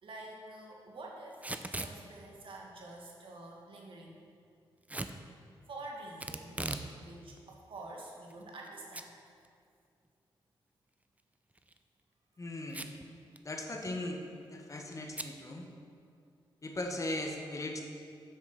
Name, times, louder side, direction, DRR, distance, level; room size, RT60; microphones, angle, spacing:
voice 1, 0.0-4.2 5.7-9.1, right 2 dB, 65° right, -1 dB, 1.8 m, -48 dB
Packing tape duct tape / Tearing, 1.3-2.0 4.9-5.2 6.2-6.9 7.3-7.4 8.1-8.7 8.9-9.0 9.4-9.5 11.5-11.8 12.7-13.1 13.4-13.5 13.7-14.0 15.1-15.3, right 2 dB, 15° right, 0.6 m, -39 dB
voice 2, 12.4-12.9 13.4-14.2 14.5-15.7 16.6-17.8, left 1 dB, 35° left, 3 dB, 1.3 m, -38 dB
8.0 x 6.4 x 5.9 m, 2.4 s
cardioid pair, 60°, 9 cm